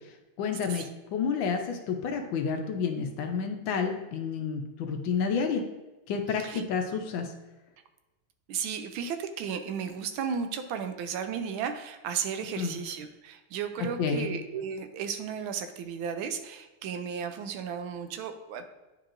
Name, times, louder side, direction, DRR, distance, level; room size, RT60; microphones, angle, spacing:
voice 1, 0.4-0.8 1.1-5.6 6.1-7.3 12.6-12.8 14.0-14.3, left 6 dB, 70° left, 4 dB, 1.3 m, -30 dB
voice 2, 6.3-6.6 8.5-18.7, right 7 dB, 75° right, 8 dB, 1.3 m, -34 dB
9.5 x 4.6 x 2.5 m, 1.1 s
omnidirectional pair, 2.3 m